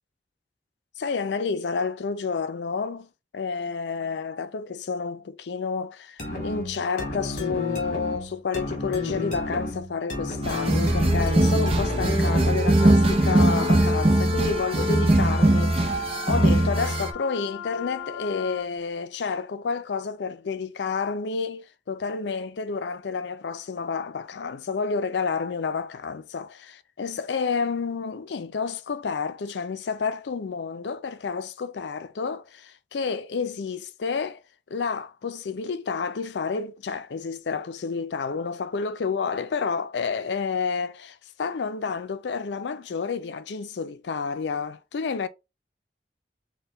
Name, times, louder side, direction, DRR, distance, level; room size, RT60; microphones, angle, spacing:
voice 1, 1.0-3.1 3.3-15.9 16.3-34.4 34.7-45.3, left 5 dB, 85° left, 0.5 m, -30 dB
sound 1, 6.2-12.7, left 1 dB, 45° left, 1.7 m, -31 dB
sound 2, 10.4-17.1, right 1 dB, 35° right, 0.5 m, -21 dB
Wind instrument woodwind instrument, 12.7-18.7, left 8 dB, 15° left, 1.5 m, -38 dB
4.2 x 2.2 x 3.8 m
head